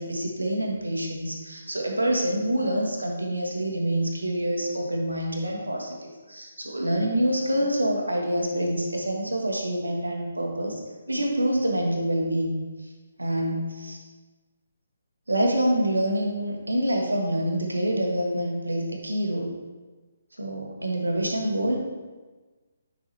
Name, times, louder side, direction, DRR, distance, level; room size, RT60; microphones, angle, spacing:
voice 1, 0.0-10.8 11.1-12.6 13.2-14.0 15.3-19.5 20.4-21.8, right 1 dB, 80° right, 0 dB, 1.6 m, -26 dB
10.5 x 5.7 x 2.9 m, 1.3 s
figure-of-eight pair, 140°, 0 cm